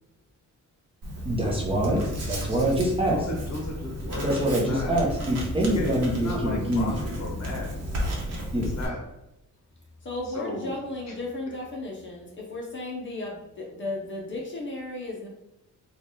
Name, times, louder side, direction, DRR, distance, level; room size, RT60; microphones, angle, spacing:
Writing, 1.0-8.9, equal, 50° right, 1.0 m, -33 dB
voice 1, 1.2-2.0 2.3-3.2 4.2-6.9 8.5-8.7, right 1 dB, 15° right, -3 dB, 0.7 m, -25 dB
voice 2, 3.1-4.9 5.6-7.7 8.6-9.0 10.2-10.7 11.1-11.2 11.5-11.6, left 1 dB, 55° left, 0 dB, 1.0 m, -35 dB
voice 3, 10.0-15.3, left 2 dB, 40° left, -2 dB, 0.7 m, -34 dB
3.2 x 2.4 x 4.0 m, 0.90 s
wide cardioid pair, 165°, 32 cm